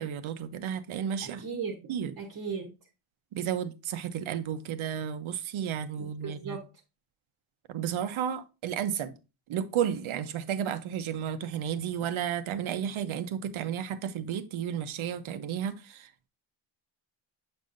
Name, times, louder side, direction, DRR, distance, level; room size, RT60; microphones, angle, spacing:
voice 1, 0.0-1.4 1.9-2.1 3.3-6.6 7.7-9.1 9.5-16.3, right 9 dB, 80° right, 0.8 m, -32 dB
voice 2, 1.2-1.9 2.2-2.7 6.0-6.7, right 5 dB, 40° right, 1.0 m, -37 dB
7.8 x 5.5 x 2.6 m
wide cardioid pair, 170°, 48 cm